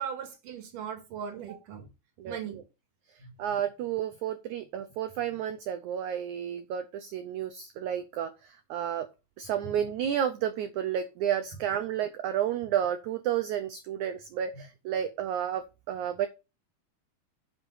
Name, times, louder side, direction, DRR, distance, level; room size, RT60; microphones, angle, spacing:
voice 1, 0.0-1.9 2.2-2.6 3.2-3.6 14.5-14.6, right 8 dB, 65° right, 6 dB, 3.3 m, -39 dB
voice 2, 2.2-2.6 3.4-9.1 9.4-16.3, right 10 dB, 80° right, 10 dB, 1.7 m, -31 dB
8.1 x 7.4 x 4.8 m, 0.28 s
omnidirectional pair, 4.3 m